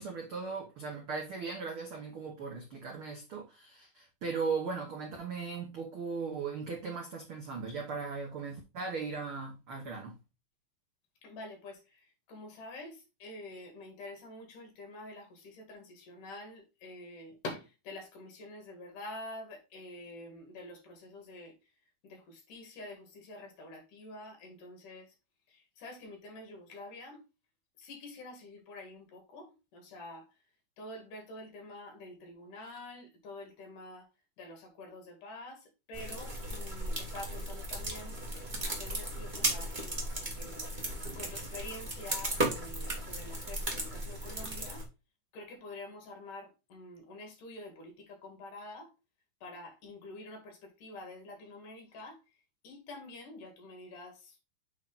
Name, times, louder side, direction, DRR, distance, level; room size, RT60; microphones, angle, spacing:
voice 1, 0.0-10.2, right 5 dB, 70° right, 1.2 m, -38 dB
voice 2, 11.2-21.7 22.0-25.1 25.5-27.2 27.8-30.4 30.8-34.1 34.4-40.8 41.1-44.8 45.3-48.9 49.4-52.2 52.6-54.4, left 2 dB, 65° left, 3.4 m, -47 dB
sound 1, 35.9-44.8, right 1 dB, 30° right, 0.8 m, -36 dB
8.2 x 3.7 x 3.9 m
omnidirectional pair, 4.0 m